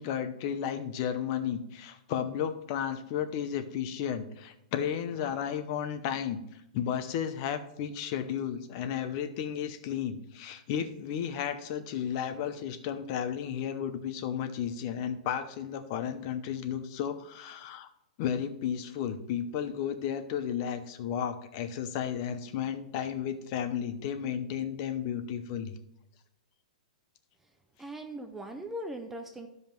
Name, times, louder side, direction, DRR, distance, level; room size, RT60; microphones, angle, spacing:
voice 1, 0.0-6.4 6.7-17.9 18.2-25.7, left 8 dB, 35° left, 10 dB, 0.8 m, -33 dB
voice 2, 27.8-29.5, right 1 dB, 5° right, 5 dB, 0.5 m, -39 dB
12.5 x 5.4 x 4.5 m, 0.80 s
hypercardioid pair, 165°, 4 cm